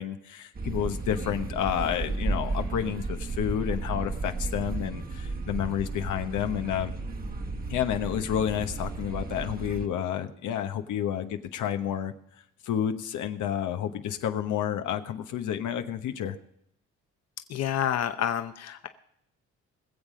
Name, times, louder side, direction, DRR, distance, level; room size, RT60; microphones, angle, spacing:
voice 1, 0.0-6.9 7.7-12.1 12.6-16.4, left 10 dB, 80° left, 7 dB, 1.1 m, -30 dB
sound 1, 0.5-9.9, right 3 dB, 30° right, 1.2 m, -33 dB
voice 2, 17.5-18.9, left 10 dB, 60° left, 8 dB, 0.9 m, -28 dB
21.0 x 7.5 x 5.1 m, 0.74 s
cardioid pair, 90°, 30 cm